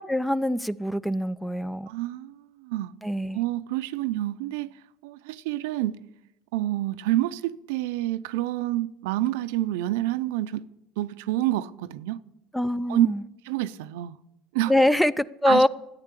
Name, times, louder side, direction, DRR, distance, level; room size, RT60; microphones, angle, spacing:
voice 1, 0.0-1.9 3.0-3.4 12.5-13.2 14.7-15.7, left 1 dB, 5° left, 0.5 m, -24 dB
voice 2, 1.9-2.9 3.3-6.0 6.5-10.7 11.0-12.2 12.9-13.1 13.4-14.2 14.5-14.7 15.5-15.6, right 15 dB, 85° right, 0.6 m, -28 dB
14.0 x 9.8 x 8.3 m
supercardioid pair, 110°, 0 cm